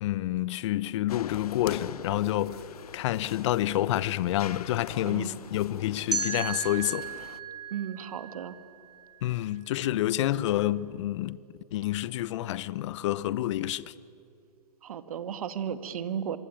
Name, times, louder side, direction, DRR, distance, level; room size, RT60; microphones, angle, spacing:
voice 1, 0.0-2.6 2.9-7.1 9.2-11.4 11.7-13.9, left 14 dB, 45° left, 0.9 m, -28 dB
sound 1, 1.1-7.4, left 8 dB, 65° left, 1.1 m, -43 dB
voice 2, 5.0-5.4 7.7-8.6 14.8-16.4, right 8 dB, 60° right, 2.0 m, -34 dB
sound 2, 6.1-9.1, right 5 dB, 85° right, 3.5 m, -35 dB
25.5 x 24.0 x 9.1 m
hypercardioid pair, 120°, 20 cm